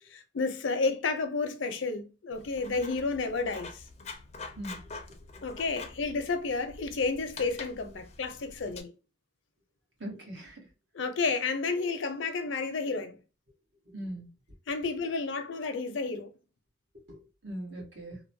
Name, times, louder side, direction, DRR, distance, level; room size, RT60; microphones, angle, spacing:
voice 1, 0.1-3.8 5.4-8.9 10.9-13.2 14.7-16.3, left 4 dB, 85° left, 0.6 m, -31 dB
Writing, 2.3-8.8, left 3 dB, 35° left, 0.4 m, -46 dB
voice 2, 10.0-10.6 13.9-14.3 17.1-18.2, right 1 dB, 75° right, 1.2 m, -40 dB
2.9 x 2.1 x 2.6 m
head